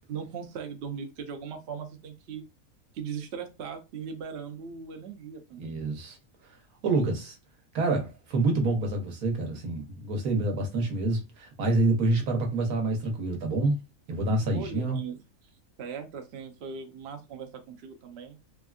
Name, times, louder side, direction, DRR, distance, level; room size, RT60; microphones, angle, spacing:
voice 1, 0.1-2.4 2.9-5.8 14.5-15.2 15.8-18.4, right 6 dB, 60° right, 0.8 m, -39 dB
voice 2, 5.6-6.2 6.8-7.4 7.7-13.8 14.1-15.0, right 2 dB, 80° right, 1.3 m, -27 dB
3.4 x 2.4 x 2.3 m
omnidirectional pair, 1.5 m